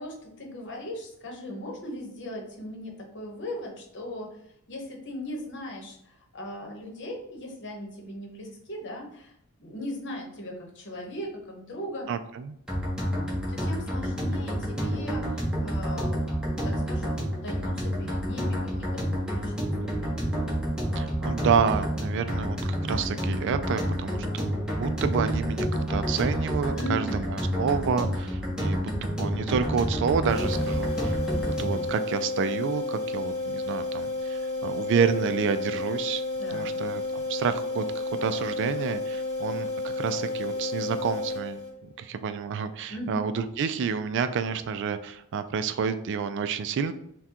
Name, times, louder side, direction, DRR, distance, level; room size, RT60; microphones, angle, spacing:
voice 1, 0.0-4.4 4.7-12.1 13.5-20.3 26.7-27.3 36.4-36.8 42.9-43.2, left 1 dB, 55° left, 1 dB, 1.0 m, -38 dB
voice 2, 12.1-12.6 21.0-31.2 31.4-36.2 36.5-41.6 42.0-46.9, right 6 dB, 55° right, 10 dB, 0.3 m, -29 dB
The Plan - Upbeat Loop (No Voice Edit) Mono Track, 12.7-31.9, equal, 5° right, 0.9 m, -29 dB
sound 1, 30.3-42.0, left 2 dB, 30° left, 1.2 m, -31 dB
5.9 x 2.2 x 2.8 m, 0.72 s
head